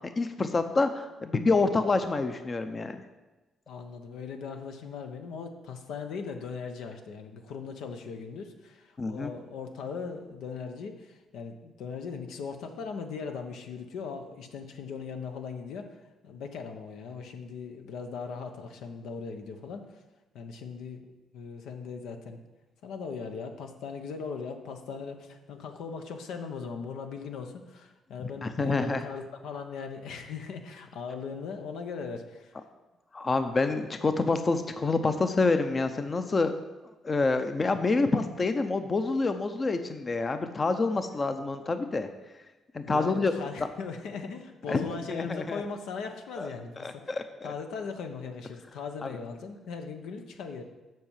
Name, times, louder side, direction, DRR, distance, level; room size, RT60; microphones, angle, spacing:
voice 1, 0.2-3.0 9.0-9.3 28.4-29.0 33.1-36.5 37.0-42.1 42.7-43.3 44.7-45.6 46.4-46.5 46.8-47.2 49.0-49.1, left 3 dB, 35° left, 8 dB, 0.7 m, -27 dB
voice 2, 3.7-16.0 16.2-20.0 20.3-22.4 22.8-32.6 42.8-47.1 47.4-50.6, left 5 dB, 85° left, 5 dB, 1.0 m, -39 dB
7.7 x 5.7 x 7.3 m, 1.1 s
cardioid pair, 90°, 0 cm